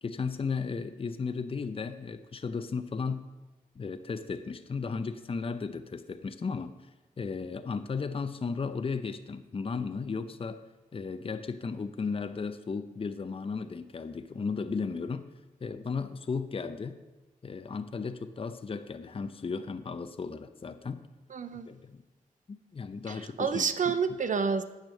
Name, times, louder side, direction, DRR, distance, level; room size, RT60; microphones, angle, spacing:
voice 1, 0.0-3.3 3.8-6.7 7.2-10.6 10.9-15.3 15.6-17.0 17.4-21.0 21.7-22.0 22.5-24.0, left 5 dB, 40° left, 10 dB, 0.6 m, -35 dB
voice 2, 21.3-21.7 23.1-24.6, right 6 dB, 60° right, 11 dB, 0.6 m, -29 dB
9.1 x 5.1 x 7.5 m, 1.1 s
cardioid pair, 55°, 15 cm